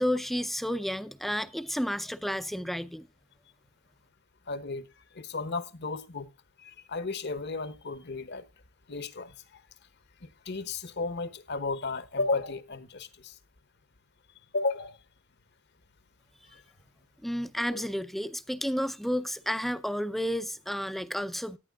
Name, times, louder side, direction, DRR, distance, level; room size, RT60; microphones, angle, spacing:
voice 1, 0.0-3.1 17.2-21.6, equal, ahead, 0.5 m, -31 dB
voice 2, 4.5-4.8 5.1-6.3 6.6-8.5 8.9-9.6 10.2-13.4 14.5-15.0 16.5-16.6 17.7-17.9, left 3 dB, 55° left, 1.1 m, -34 dB
17.5 x 11.0 x 2.3 m
head